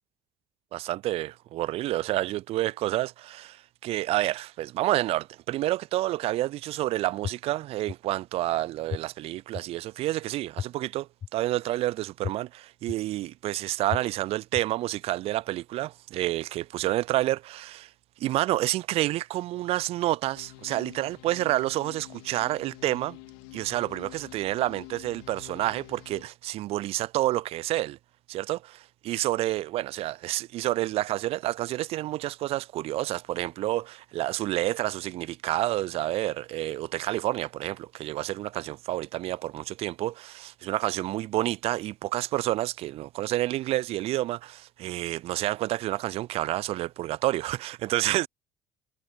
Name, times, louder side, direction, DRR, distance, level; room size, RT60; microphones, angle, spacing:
voice 1, 0.7-3.6 3.8-17.9 18.2-23.2 23.5-28.0 28.3-48.3, right 16 dB, 50° right, 0.4 m, -29 dB
sound 1, 7.2-7.3 7.9-8.0 8.9-9.0 9.5-9.6 10.6-10.7 11.2-11.3 12.2-12.3 12.9-13.0 13.9-14.0 14.5-14.6, left 8 dB, 35° left, 0.5 m, -31 dB
sound 2, 20.3-26.2, left 30 dB, 70° left, 2.4 m, -47 dB
figure-of-eight pair, 55°, 13 cm